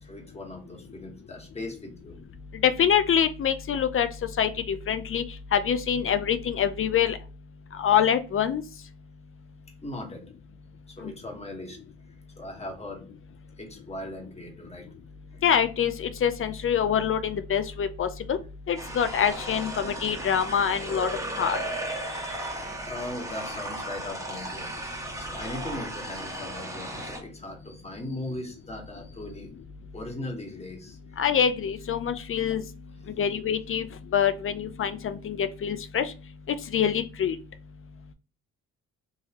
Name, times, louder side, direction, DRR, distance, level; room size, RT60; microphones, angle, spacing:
voice 1, 0.0-2.1 9.8-10.2 11.0-11.8 12.4-13.0 13.6-14.8 21.5-29.5 29.9-31.0, left 1 dB, 20° left, 1 dB, 1.4 m, -39 dB
voice 2, 2.6-4.1 4.4-5.2 5.5-7.2 7.8-8.6 11.0-11.1 15.4-18.4 18.7-21.6 31.2-32.6 33.2-33.9 34.1-36.1 36.5-37.4, left 8 dB, 45° left, 10 dB, 0.5 m, -25 dB
sound 1, 18.8-27.2, right 1 dB, 10° right, 1.2 m, -35 dB
3.8 x 2.7 x 2.9 m, 0.35 s
cardioid pair, 90°, 30 cm